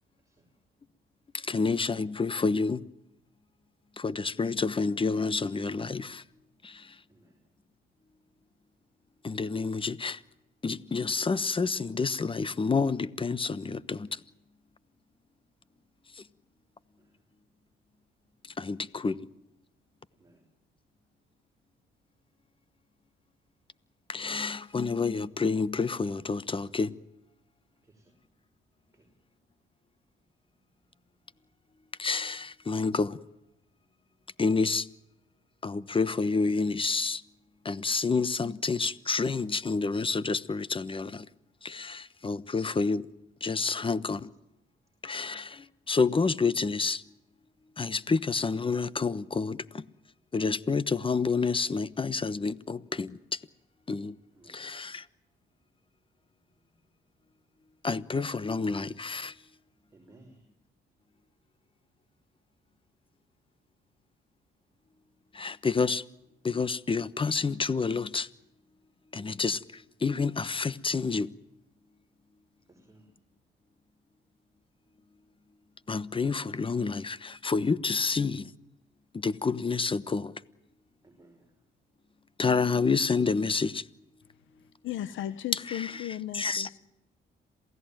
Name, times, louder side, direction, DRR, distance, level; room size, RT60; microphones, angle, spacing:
voice 1, 0.2-0.5 7.1-7.5 17.0-17.2 20.1-20.4 27.8-28.2 28.9-29.1 54.3-54.7 59.9-60.5 72.7-73.1 78.0-78.1 81.0-81.6, right 2 dB, 15° right, 5.4 m, -60 dB
voice 2, 1.3-2.8 4.0-6.2 6.6-7.0 9.2-10.2 10.6-14.2 16.2-16.3 18.6-19.3 24.1-27.0 32.0-33.2 34.4-34.9 35.6-37.2 37.6-41.3 41.6-43.1 43.4-44.3 45.0-47.0 47.8-49.8 50.3-53.4 53.9-54.1 54.5-55.1 57.8-59.3 65.3-66.0 66.4-68.3 69.1-71.3 75.9-78.5 79.1-80.3 82.4-83.8 86.3-86.7, left 4 dB, 25° left, 1.1 m, -29 dB
voice 3, 84.6-86.8, left 12 dB, 75° left, 1.1 m, -36 dB
27.5 x 17.0 x 9.1 m
cardioid pair, 90°, 20 cm